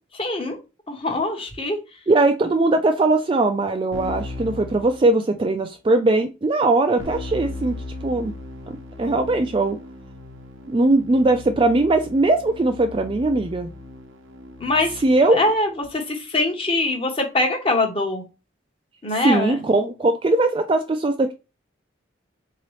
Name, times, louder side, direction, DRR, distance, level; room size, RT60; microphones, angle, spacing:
voice 1, 0.2-0.6 0.9-1.8 14.6-18.2 19.0-19.6, left 2 dB, 30° left, 3 dB, 0.9 m, -23 dB
voice 2, 2.1-7.8 8.0-8.3 8.7-9.8 10.7-13.7 15.0-15.4 19.2-21.3, right 2 dB, 25° right, 6 dB, 0.3 m, -20 dB
Keyboard (musical), 3.9-5.6 7.0-15.4, left 2 dB, 80° right, 0.7 m, -37 dB
3.8 x 2.8 x 3.1 m, 0.28 s
head